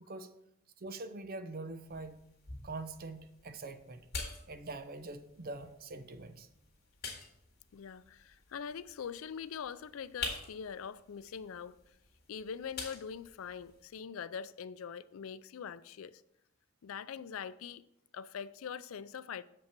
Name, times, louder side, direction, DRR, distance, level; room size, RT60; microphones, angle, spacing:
voice 1, 0.8-2.3 2.6-4.1 4.5-6.5, right 2 dB, 45° right, 0.7 m, -44 dB
sound 1, 1.9-13.9, left 4 dB, 50° left, 2.2 m, -47 dB
voice 2, 7.7-11.8 12.3-16.2 16.8-17.8 18.1-19.4, left 7 dB, 85° left, 0.4 m, -43 dB
7.0 x 5.3 x 6.7 m
head